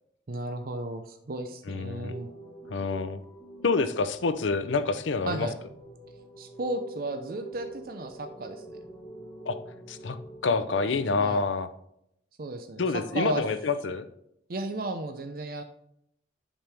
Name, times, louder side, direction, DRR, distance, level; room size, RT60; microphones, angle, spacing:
voice 1, 0.3-2.3 5.3-5.6 6.4-8.8 11.2-11.4 12.4-12.8 13.1-13.4 14.5-15.6, right 2 dB, 50° right, 6 dB, 0.5 m, -34 dB
voice 2, 1.7-2.2 2.7-3.2 3.6-5.5 9.5-9.6 9.9-10.2 10.4-11.7 12.8-14.1, left 4 dB, 85° left, 12 dB, 0.6 m, -27 dB
sound 1, 2.1-11.2, right 2 dB, 15° left, 2.9 m, -46 dB
7.2 x 5.3 x 3.4 m, 0.76 s
head